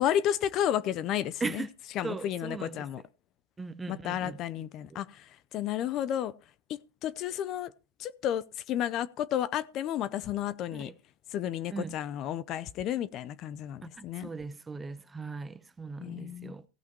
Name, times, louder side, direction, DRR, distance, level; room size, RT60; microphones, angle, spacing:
voice 1, 0.0-1.7 2.0-3.0 3.9-6.3 6.7-7.7 8.0-10.9 11.3-14.3 16.0-16.5, left 11 dB, 40° left, 0.6 m, -32 dB
voice 2, 2.0-2.9 3.6-5.0 10.7-10.9 11.7-11.9 13.9-16.7, right 4 dB, 15° right, 0.8 m, -39 dB
17.0 x 5.8 x 4.5 m
supercardioid pair, 135°, 0 cm